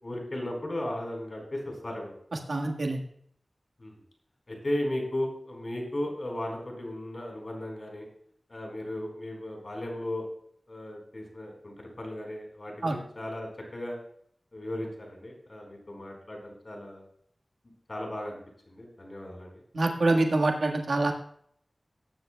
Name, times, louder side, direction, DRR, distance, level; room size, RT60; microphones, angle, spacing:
voice 1, 0.0-2.1 3.8-3.9 4.5-8.1 8.5-10.3 10.7-14.0 14.5-17.0 17.9-18.4 18.7-19.6, left 1 dB, 55° left, 1 dB, 4.4 m, -36 dB
voice 2, 2.5-3.0 12.8-13.0 19.7-21.1, right 2 dB, 85° right, 2 dB, 1.6 m, -25 dB
19.0 x 10.0 x 2.3 m, 0.64 s
cardioid pair, 40°, 0 cm